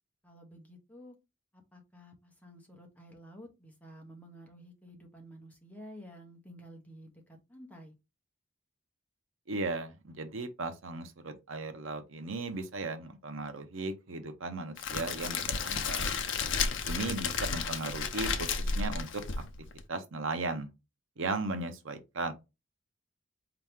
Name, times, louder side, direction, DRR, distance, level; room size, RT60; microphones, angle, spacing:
voice 1, 0.2-1.2 1.5-7.9, equal, 5° left, 1.0 m, -51 dB
voice 2, 9.5-16.2 16.8-19.2 19.9-20.7 21.2-22.3, right 3 dB, 80° right, 0.8 m, -36 dB
Crackle, 14.8-19.8, left 5 dB, 70° left, 0.7 m, -32 dB
4.5 x 2.9 x 3.5 m
head